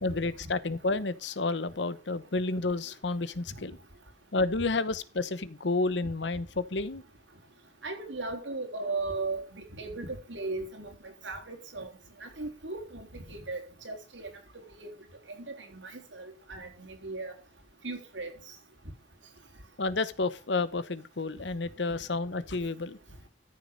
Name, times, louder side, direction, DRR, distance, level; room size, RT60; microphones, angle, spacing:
voice 1, 0.0-3.7 4.3-7.0 19.8-23.0, left 3 dB, 75° left, 1.0 m, -30 dB
voice 2, 7.8-10.9 11.2-11.9 12.2-14.3 14.8-14.9 15.5-17.3 17.8-18.3, right 3 dB, 85° right, 3.5 m, -37 dB
14.0 x 6.6 x 5.2 m
head